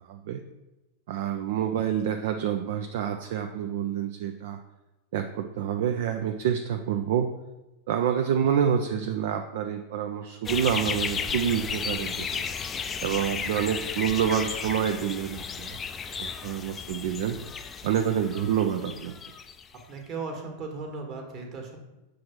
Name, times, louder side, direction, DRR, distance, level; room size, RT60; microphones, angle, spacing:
voice 1, 0.1-0.4 1.1-4.6 5.1-7.3 7.9-12.4 13.0-15.8 16.2-17.4 17.8-19.1, right 9 dB, 55° right, 6 dB, 0.4 m, -27 dB
sound 1, 10.4-19.8, left 6 dB, 20° left, 0.4 m, -34 dB
voice 2, 19.7-21.8, right 4 dB, 35° right, 2 dB, 1.4 m, -37 dB
6.3 x 3.4 x 5.8 m, 1.0 s
figure-of-eight pair, 90°, 0 cm